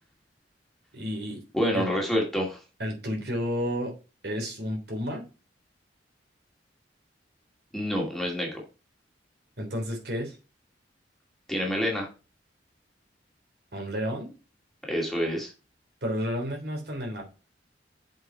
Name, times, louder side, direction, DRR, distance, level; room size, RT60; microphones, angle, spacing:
voice 1, 0.9-1.4 1.7-1.9 2.8-3.9 4.2-5.3 9.6-10.4 13.7-14.4 16.0-17.2, equal, 65° right, 1 dB, 3.5 m, -31 dB
voice 2, 1.5-2.6 7.7-8.6 11.5-12.1 14.8-15.5, equal, ahead, -1 dB, 2.3 m, -27 dB
7.5 x 5.2 x 4.5 m, 0.31 s
head